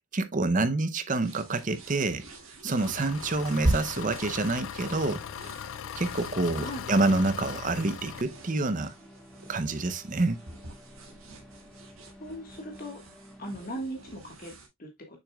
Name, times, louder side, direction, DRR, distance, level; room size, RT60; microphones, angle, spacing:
voice 1, 0.0-2.3 2.6-5.2 6.0-8.9 9.5-10.4, right 2 dB, 40° right, 0.6 m, -27 dB
sound 1, 1.2-14.7, right 1 dB, 80° right, 2.1 m, -39 dB
Engine, 2.8-8.2, left 8 dB, 70° left, 0.3 m, -39 dB
sound 2, 3.4-13.7, equal, 5° left, 2.3 m, -53 dB
voice 2, 12.2-13.0 13.4-15.2, right 1 dB, 45° left, 1.5 m, -39 dB
6.4 x 6.4 x 2.3 m
head